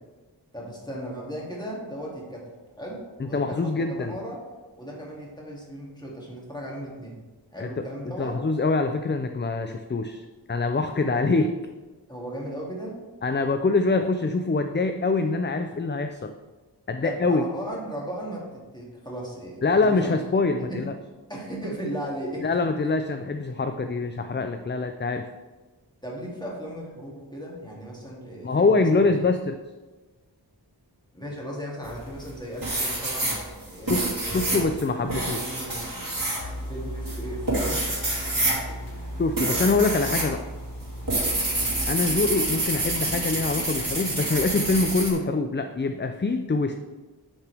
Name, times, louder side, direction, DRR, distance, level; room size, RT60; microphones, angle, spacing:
voice 1, 0.5-4.4 4.8-7.2 7.5-8.4 11.0-11.2 12.1-13.0 17.0-20.9 21.3-22.6 26.0-29.1 31.1-33.3 33.7-34.8 35.2-35.9 36.7-37.8, equal, 10° left, -4 dB, 2.5 m, -36 dB
voice 2, 3.2-4.1 7.6-7.8 8.2-11.5 13.2-16.3 16.9-17.4 19.6-20.9 22.4-25.3 28.4-29.6 33.9-34.0 34.3-35.4 39.2-40.4 41.9-46.7, left 3 dB, 25° left, 7 dB, 0.4 m, -24 dB
sound 1, 31.9-32.3 32.6-40.3 40.6-45.1, right 2 dB, 50° right, 2.5 m, -27 dB
sound 2, 36.4-42.1, equal, 70° left, 1.4 m, -37 dB
9.9 x 5.8 x 3.5 m, 1.3 s
wide cardioid pair, 45°, 42 cm